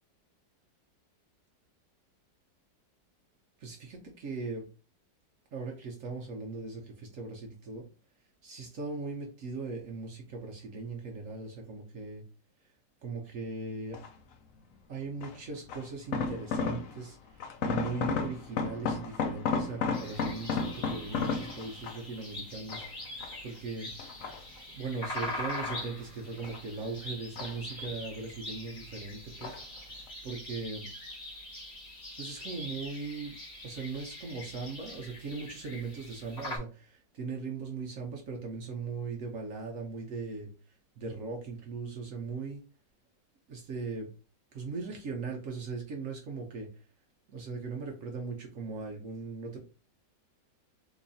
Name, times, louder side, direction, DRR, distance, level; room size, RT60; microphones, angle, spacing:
voice 1, 3.6-4.6 5.5-7.9 8.4-12.2 13.0-14.0 14.9-23.9 24.7-30.9 32.2-33.3 33.6-42.6 43.5-44.1 44.5-46.9 47.3-49.6, right 4 dB, 60° right, 1 dB, 0.8 m, -39 dB
sound 1, 13.9-14.3 15.2-17.1 17.4-22.2 22.7-23.6 24.0-24.8 25.3-26.7 26.9-28.1 28.4-29.0 29.4-29.8 30.1-30.2, left 5 dB, 70° left, 0.7 m, -34 dB
sound 2, 19.9-36.6, left 1 dB, 40° left, 1.8 m, -43 dB
3.7 x 3.1 x 2.6 m, 0.35 s
omnidirectional pair, 1.9 m